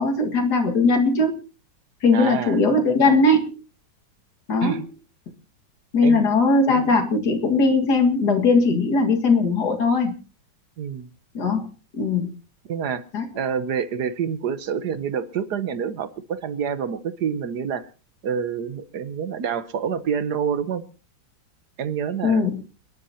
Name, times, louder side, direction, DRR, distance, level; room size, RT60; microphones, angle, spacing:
voice 1, 0.0-1.4 2.0-3.5 4.5-4.8 5.9-10.1 11.3-11.7 11.9-12.3 13.1-13.3 22.2-22.6, left 3 dB, 65° left, 2.6 m, -19 dB
voice 2, 2.1-2.6 4.6-4.9 6.0-6.3 10.8-11.1 12.7-13.0 13.3-17.9 18.2-20.8 21.8-22.5, right 7 dB, 70° right, 1.5 m, -27 dB
29.5 x 10.5 x 2.8 m
omnidirectional pair, 1.9 m